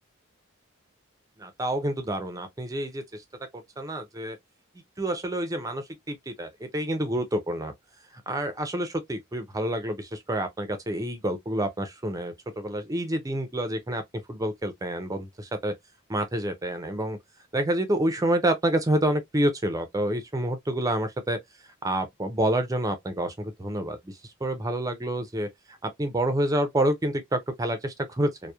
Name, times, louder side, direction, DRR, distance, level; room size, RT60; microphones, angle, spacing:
voice 1, 1.4-3.2 3.5-4.4 5.0-7.7 8.3-15.7 16.1-17.2 17.5-21.4 21.8-25.5 25.8-28.5, right 1 dB, 15° right, 0.4 m, -28 dB
2.8 x 2.0 x 2.2 m
head